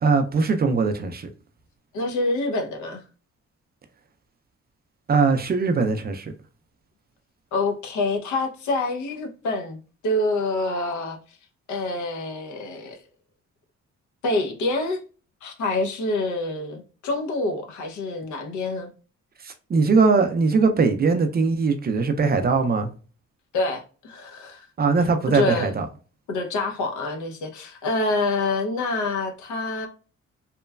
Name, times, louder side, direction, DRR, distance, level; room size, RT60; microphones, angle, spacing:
voice 1, 0.0-1.3 5.1-6.3 19.4-22.9 24.8-25.9, right 4 dB, 35° right, 0.4 m, -21 dB
voice 2, 1.9-3.0 7.5-9.8 10.0-11.2 11.7-13.0 14.2-15.0 15.4-18.9 23.5-24.7 25.3-25.7 26.3-29.9, left 2 dB, 75° left, 0.7 m, -26 dB
3.0 x 2.1 x 2.3 m
cardioid pair, 90°, 30 cm